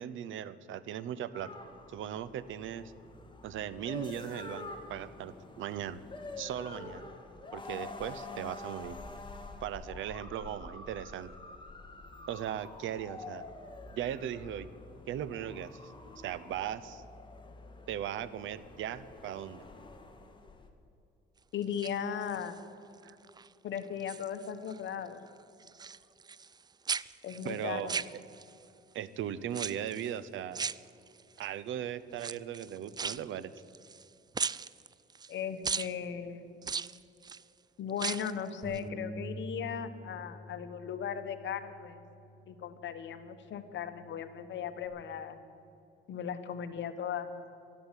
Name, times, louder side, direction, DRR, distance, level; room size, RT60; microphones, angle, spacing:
voice 1, 0.0-1.5 1.9-2.9 3.4-6.0 6.4-7.1 7.5-9.0 9.6-11.3 12.3-13.5 14.0-14.7 15.1-17.0 17.9-19.6 23.0-23.2 27.4-28.2 28.9-30.7 31.4-33.5, right 10 dB, 80° right, 16 dB, 0.8 m, -38 dB
sound 1, 1.3-20.7, left 3 dB, 25° left, 1.9 m, -47 dB
voice 2, 21.5-22.6 23.6-25.2 27.2-28.0 35.3-36.5 37.8-42.0 42.5-45.4 46.1-47.3, left 8 dB, 70° left, 10 dB, 1.2 m, -37 dB
sound 2, 21.6-22.6 23.1-23.5 23.8-24.8 25.1-26.6 26.9-28.6 29.5-30.1 30.5-31.4 32.1-34.1 34.3-35.3 35.6-35.9 36.6-37.4 37.9-38.4 38.7-38.8, right 5 dB, 20° right, 0.3 m, -37 dB
Bass guitar, 38.6-44.9, right 1 dB, 40° right, 2.8 m, -47 dB
12.5 x 11.5 x 9.0 m, 2.7 s
cardioid pair, 90°, 20 cm